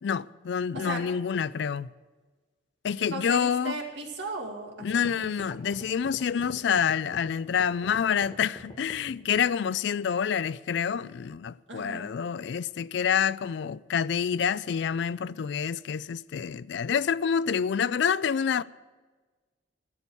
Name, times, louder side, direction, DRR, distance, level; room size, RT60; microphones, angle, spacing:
voice 1, 0.0-1.9 2.8-3.7 4.8-18.6, left 7 dB, 60° left, 0.3 m, -27 dB
voice 2, 3.1-5.0 11.7-12.2, right 3 dB, 65° right, 2.2 m, -36 dB
sound 1, 4.4-4.5 4.9-9.5, equal, 20° left, 1.5 m, -44 dB
13.5 x 7.0 x 9.5 m
head